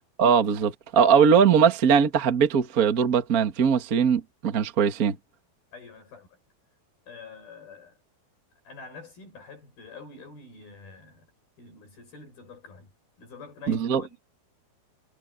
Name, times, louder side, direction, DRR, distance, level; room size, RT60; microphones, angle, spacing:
voice 1, 0.2-5.2 13.7-14.0, right 7 dB, 55° right, 0.9 m, -20 dB
voice 2, 5.7-6.3 7.1-8.0 8.6-11.3 11.6-12.9 13.2-14.2, left 4 dB, 60° left, 8.5 m, -46 dB
omnidirectional pair, 4.7 m